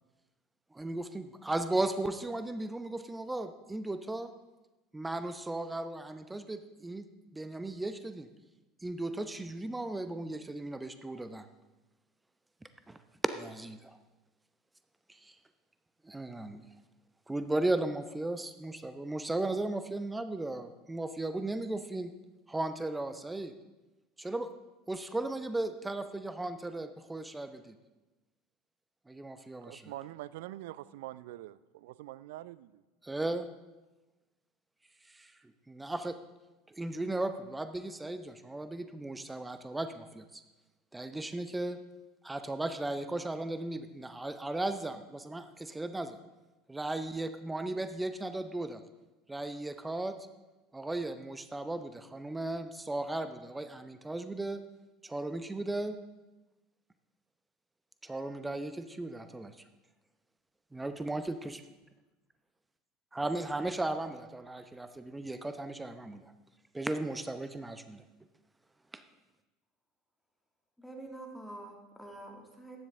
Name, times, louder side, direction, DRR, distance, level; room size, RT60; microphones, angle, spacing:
voice 1, 0.7-4.3 4.9-7.0 7.3-8.3 8.8-11.5 12.9-13.0 13.2-14.0 15.1-15.3 16.0-16.7 17.3-22.1 22.5-23.5 24.2-24.5 24.9-27.8 29.1-29.9 33.0-33.5 35.1-35.3 35.7-36.2 36.7-40.4 40.9-41.8 42.2-46.2 46.7-48.8 49.3-50.2 50.7-54.6 55.0-56.0 58.0-59.6 60.7-61.6 63.1-66.3 66.7-68.0 68.9-69.0, right 2 dB, 10° right, 10 dB, 0.8 m, -36 dB
voice 2, 29.7-32.8, right 15 dB, 65° right, 17 dB, 0.4 m, -45 dB
voice 3, 70.8-72.8, right 2 dB, 5° left, 1 dB, 2.3 m, -46 dB
14.5 x 10.5 x 3.7 m, 1.1 s
figure-of-eight pair, 75°, 0 cm